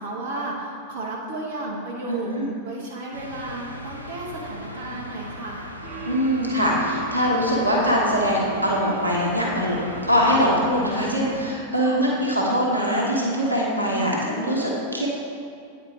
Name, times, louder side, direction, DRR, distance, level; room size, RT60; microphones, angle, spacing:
voice 1, 0.0-2.3 2.6-5.7 11.7-12.2 13.9-14.6, right 2 dB, 55° right, -3 dB, 1.1 m, -33 dB
voice 2, 2.1-2.5 6.1-9.8 10.0-15.1, equal, 85° right, -3 dB, 1.2 m, -22 dB
sound 1, 3.1-11.5, equal, 90° left, 0.6 m, -38 dB
sound 2, 5.8-10.7, right 1 dB, 25° right, 0.7 m, -37 dB
9.1 x 4.3 x 4.8 m, 2.3 s
figure-of-eight pair, 90°, 0 cm